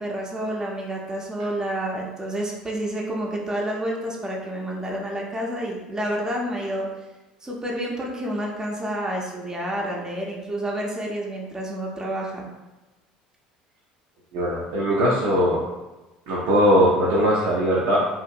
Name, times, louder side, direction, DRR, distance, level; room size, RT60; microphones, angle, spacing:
voice 1, 0.0-6.9 7.4-12.5, right 1 dB, 15° right, -2 dB, 0.6 m, -29 dB
voice 2, 14.3-15.6 16.3-18.0, equal, 60° right, -5 dB, 0.5 m, -20 dB
2.8 x 2.5 x 2.4 m, 1.1 s
figure-of-eight pair, 65°, 4 cm